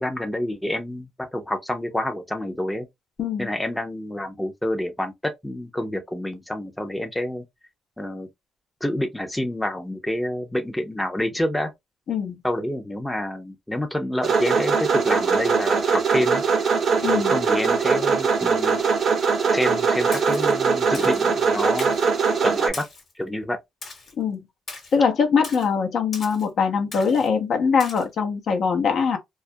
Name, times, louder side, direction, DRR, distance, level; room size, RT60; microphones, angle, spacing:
voice 1, 0.0-2.9 3.4-5.1 5.4-7.4 8.0-8.3 8.8-11.7 12.4-16.4 17.1-18.8 19.5-22.0 22.4-22.8 23.2-23.6, left 1 dB, 10° left, 0.5 m, -28 dB
sound 1, 14.2-22.7, right 5 dB, 55° right, 0.6 m, -21 dB
voice 2, 17.0-17.3 24.2-24.4 24.9-29.2, left 6 dB, 65° left, 0.6 m, -22 dB
Splash splatter, 20.1-20.5 20.9-21.3 21.8-22.1 22.7-23.1 23.8-24.1 24.7-25.0 25.4-25.7 26.1-26.5 26.9-27.3 27.8-28.0, left 3 dB, 45° left, 1.1 m, -38 dB
2.3 x 2.1 x 2.6 m
cardioid pair, 90°, 0 cm